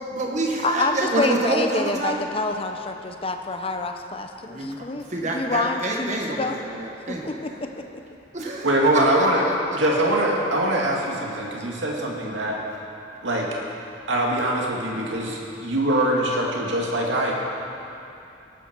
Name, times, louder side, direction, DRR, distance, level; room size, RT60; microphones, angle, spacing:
voice 1, 0.0-2.2 4.5-7.4 8.3-8.7 8.9-9.8, right 2 dB, 40° right, 0 dB, 1.9 m, -27 dB
voice 2, 0.6-6.6 7.1-7.7, left 2 dB, 30° left, 5 dB, 0.9 m, -27 dB
voice 3, 8.4-9.5 9.7-12.6 13.2-13.5 14.1-17.3, right 1 dB, 80° right, -2 dB, 2.3 m, -23 dB
18.5 x 12.0 x 4.7 m, 2.8 s
head